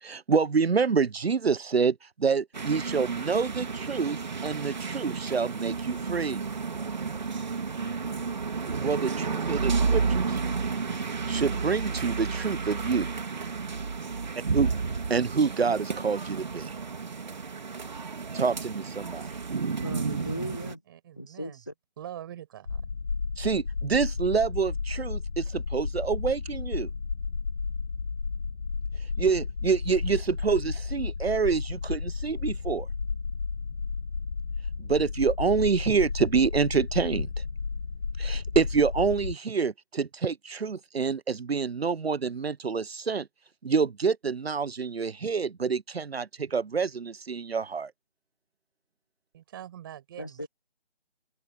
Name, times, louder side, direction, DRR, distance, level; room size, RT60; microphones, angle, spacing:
voice 1, 0.0-6.4 8.8-10.4 11.3-13.1 14.5-14.7 15.1-16.7 18.3-19.3 23.4-26.9 29.2-32.9 34.8-37.3 38.2-43.3 43.6-47.9, right 5 dB, 85° right, 0.8 m, -27 dB
sound 1, 2.5-20.7, right 5 dB, 45° right, 2.9 m, -31 dB
voice 2, 19.8-20.8 21.2-21.7 50.2-50.5, equal, 20° left, 0.5 m, -37 dB
voice 3, 20.9-21.6 22.0-22.9 49.3-50.4, right 11 dB, 20° right, 6.3 m, -43 dB
sound 2, 22.6-39.3, left 4 dB, 55° left, 1.3 m, -32 dB
figure-of-eight pair, 165°, 30 cm